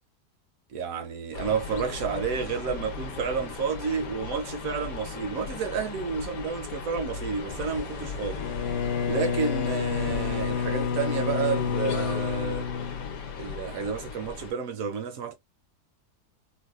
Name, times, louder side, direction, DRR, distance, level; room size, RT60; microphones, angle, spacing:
voice 1, 0.7-8.4 9.0-12.7 13.4-15.3, right 6 dB, 70° right, 0.9 m, -30 dB
sound 1, 1.3-14.5, left 5 dB, 65° left, 1.1 m, -37 dB
sound 2, 7.5-12.5, left 2 dB, 40° left, 0.5 m, -41 dB
Bowed string instrument, 8.3-13.7, left 6 dB, 90° left, 0.5 m, -29 dB
4.0 x 2.2 x 2.3 m
omnidirectional pair, 1.7 m